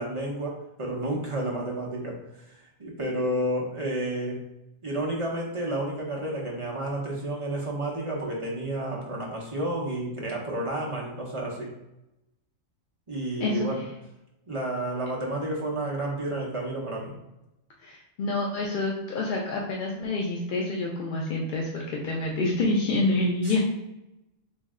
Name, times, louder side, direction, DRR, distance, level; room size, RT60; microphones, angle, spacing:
voice 1, 0.0-4.4 4.8-11.7 13.1-13.8 14.5-17.1 23.4-23.6, right 1 dB, 40° right, -3 dB, 0.5 m, -31 dB
voice 2, 17.8-23.6, left 2 dB, 60° left, -2 dB, 0.5 m, -27 dB
3.1 x 2.6 x 3.5 m, 0.90 s
omnidirectional pair, 1.4 m